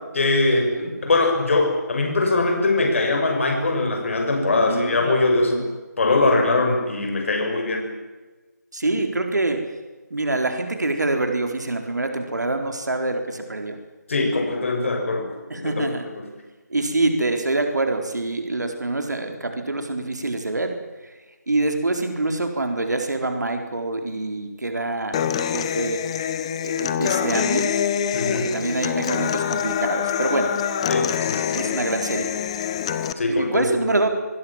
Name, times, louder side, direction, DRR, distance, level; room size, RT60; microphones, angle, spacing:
voice 1, 0.1-5.7 6.0-7.9 14.1-15.3 15.5-16.2 28.1-28.5 30.9-31.7 33.2-33.9, left 2 dB, 45° left, 4 dB, 6.6 m, -22 dB
voice 2, 4.5-5.6 8.7-9.7 10.1-13.8 15.5-16.0 16.7-20.7 21.0-21.1 21.5-27.7 28.2-30.5 31.5-32.3 33.3-34.1, right 2 dB, 75° right, 5 dB, 4.2 m, -26 dB
Human voice / Acoustic guitar, 25.1-33.1, left 9 dB, 20° left, 1.0 m, -25 dB
27.0 x 21.0 x 7.4 m, 1.2 s
figure-of-eight pair, 165°, 10 cm